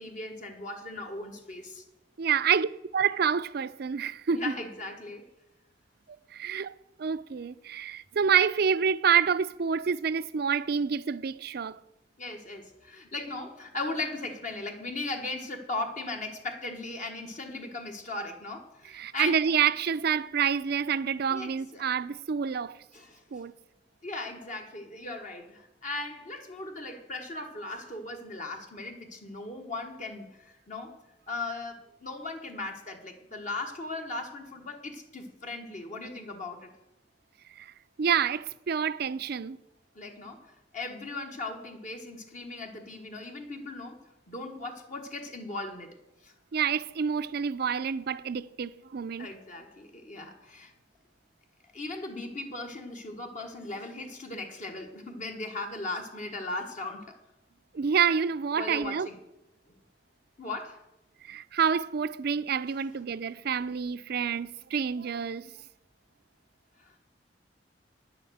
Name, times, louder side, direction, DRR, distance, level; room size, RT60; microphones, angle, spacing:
voice 1, 0.0-1.8 4.3-5.3 12.2-19.4 21.3-21.9 22.9-23.4 24.0-30.9 31.3-36.7 39.9-46.0 46.2-46.3 49.2-50.7 51.7-57.2 58.5-59.2 60.4-60.8 62.7-62.8 66.8-67.0, left 2 dB, 45° left, 1.3 m, -38 dB
voice 2, 2.2-4.5 6.3-6.7 7.0-11.8 18.9-22.8 23.3-23.5 37.6-37.7 38.0-39.6 46.5-49.3 57.7-59.1 61.2-65.5, right 7 dB, 60° right, 0.5 m, -28 dB
10.0 x 7.5 x 7.8 m
head